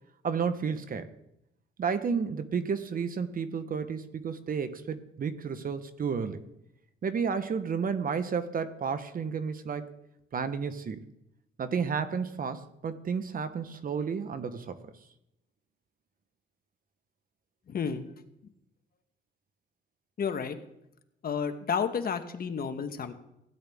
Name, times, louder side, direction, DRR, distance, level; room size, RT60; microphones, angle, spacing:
voice 1, 0.2-1.1 1.8-6.4 7.0-9.9 10.3-11.0 11.6-14.9, right 6 dB, 45° right, 11 dB, 1.0 m, -32 dB
voice 2, 17.7-18.0 20.2-20.6 21.2-23.1, left 6 dB, 50° left, 8 dB, 1.2 m, -31 dB
16.0 x 10.5 x 3.5 m, 0.83 s
cardioid pair, 90°, 20 cm